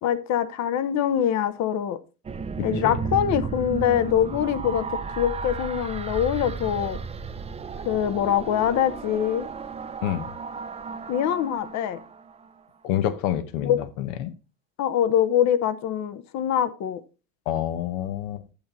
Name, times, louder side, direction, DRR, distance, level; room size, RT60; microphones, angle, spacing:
voice 1, 0.0-2.0 2.6-7.0 7.8-9.5 11.1-12.0 13.6-13.8 14.8-17.0, left 9 dB, 45° left, 1.0 m, -24 dB
sound 1, 2.2-12.6, right 5 dB, 15° right, 0.6 m, -34 dB
voice 2, 12.8-14.3 17.5-18.4, left 11 dB, 70° left, 1.2 m, -27 dB
8.7 x 7.1 x 4.0 m
supercardioid pair, 110°, 40 cm